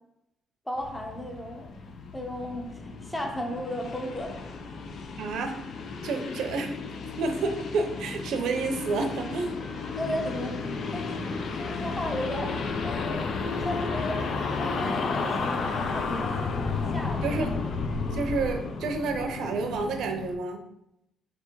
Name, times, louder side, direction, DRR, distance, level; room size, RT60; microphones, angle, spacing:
voice 1, 0.7-1.7 2.1-4.4 10.0-14.2 14.5-16.5 16.9-17.4, left 1 dB, 10° left, 2 dB, 0.8 m, -35 dB
sound 1, 0.8-20.3, left 4 dB, 65° left, 0.5 m, -33 dB
voice 2, 5.2-5.6 6.0-6.7 7.2-9.6 17.2-17.7 18.1-20.6, right 3 dB, 80° right, 5 dB, 0.6 m, -29 dB
3.4 x 2.9 x 4.6 m, 0.83 s
cardioid pair, 90°, 0 cm